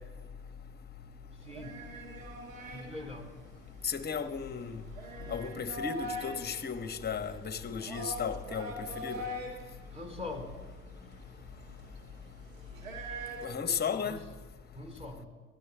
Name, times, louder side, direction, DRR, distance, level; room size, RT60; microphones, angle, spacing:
voice 1, 1.4-1.8 2.7-3.3 9.9-10.5 14.0-14.2 14.7-15.3, left 2 dB, 15° right, 4.1 m, -42 dB
sound 1, 1.4-13.4, equal, 90° right, 1.6 m, -43 dB
voice 2, 3.8-4.8 5.3-9.2 13.4-14.2, left 6 dB, 25° left, 1.0 m, -35 dB
23.0 x 16.0 x 2.2 m
hypercardioid pair, 60°, 39 cm